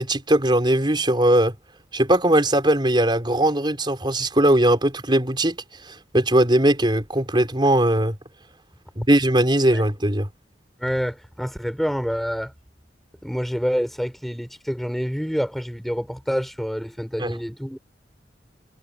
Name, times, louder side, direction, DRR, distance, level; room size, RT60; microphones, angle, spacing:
voice 1, 0.0-1.5 1.9-5.6 5.9-8.2 9.0-10.3 17.2-17.3, right 1 dB, 25° right, 4.6 m, -19 dB
voice 2, 10.8-12.5 13.2-17.8, equal, ahead, 6.2 m, -27 dB
head